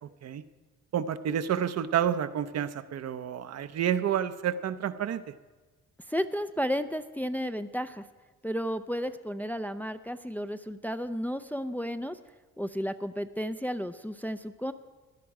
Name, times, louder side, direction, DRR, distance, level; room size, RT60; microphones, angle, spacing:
voice 1, 0.9-5.2, right 9 dB, 55° right, 11 dB, 0.7 m, -29 dB
voice 2, 6.1-8.0 8.4-12.2 12.6-14.7, equal, 5° left, 9 dB, 0.4 m, -33 dB
16.5 x 11.0 x 4.8 m, 1.3 s
cardioid pair, 90°, 30 cm